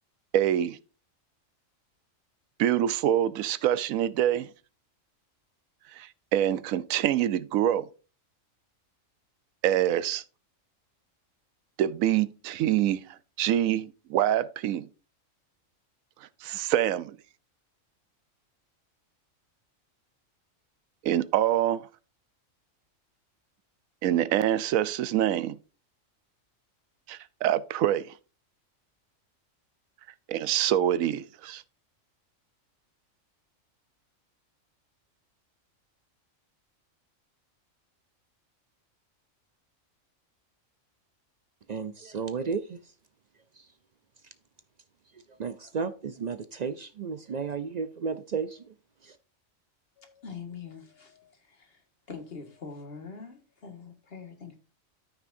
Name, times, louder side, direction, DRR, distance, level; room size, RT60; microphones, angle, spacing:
voice 1, 0.3-0.8 2.6-4.5 6.0-7.9 9.6-10.2 11.8-13.0 13.4-14.9 16.4-17.2 21.0-21.9 24.0-25.6 27.1-28.1 30.3-31.6, right 11 dB, 90° right, 1.0 m, -25 dB
voice 2, 41.7-42.9 43.6-43.7 45.3-48.7 49.0-49.2, right 5 dB, 65° right, 0.4 m, -33 dB
voice 3, 50.0-54.6, left 5 dB, 50° left, 1.9 m, -44 dB
13.5 x 5.9 x 2.6 m
omnidirectional pair, 1.4 m